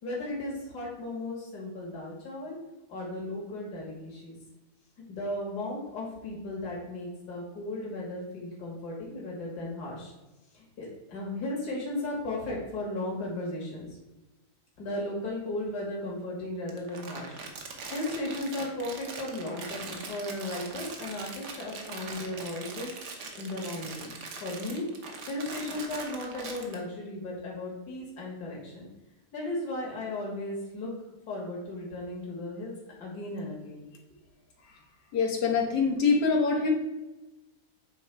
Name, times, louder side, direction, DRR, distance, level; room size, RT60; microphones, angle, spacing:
voice 1, 0.0-2.6 2.9-4.4 5.1-10.1 10.5-13.9 14.8-17.4 17.6-22.9 23.4-24.1 24.4-24.8 25.3-28.9 29.3-30.9 31.3-32.7 33.0-33.9, left 1 dB, 75° left, -3 dB, 2.1 m, -35 dB
Crumpling crinkling, 16.7-26.8, right 4 dB, 80° right, 1.5 m, -41 dB
voice 2, 35.1-36.7, left 4 dB, 90° left, 1 dB, 1.7 m, -24 dB
8.2 x 3.4 x 4.5 m, 1.0 s
omnidirectional pair, 1.8 m